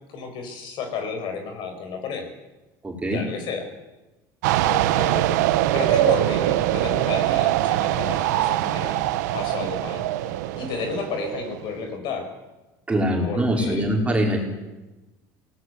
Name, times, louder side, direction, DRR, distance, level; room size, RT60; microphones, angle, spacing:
voice 1, 0.1-2.3 3.1-3.7 4.7-5.4 5.7-9.0 9.3-12.3 13.2-13.9, left 5 dB, 60° left, 6 dB, 5.6 m, -32 dB
voice 2, 2.8-3.2 12.9-14.4, right 1 dB, 15° right, 0 dB, 4.9 m, -23 dB
sound 1, 4.4-11.8, right 14 dB, 90° right, 1.2 m, -23 dB
23.5 x 19.0 x 8.0 m, 1.1 s
supercardioid pair, 105°, 9 cm